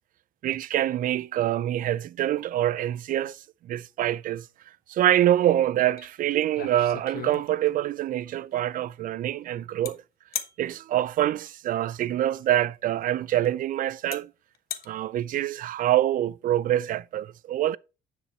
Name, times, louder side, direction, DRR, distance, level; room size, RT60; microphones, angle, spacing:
voice 1, 0.4-4.5 4.9-10.0 10.6-14.3 14.9-17.8, right 12 dB, 55° right, 0.4 m, -25 dB
sound 1, 6.0-6.1 6.4-7.8 9.8-9.9 10.3-10.6 12.4-12.5 13.4-13.5 14.1-14.2 14.5-14.9, left 10 dB, 60° left, 1.1 m, -35 dB
9.8 x 5.0 x 4.2 m
cardioid pair, 110°, 17 cm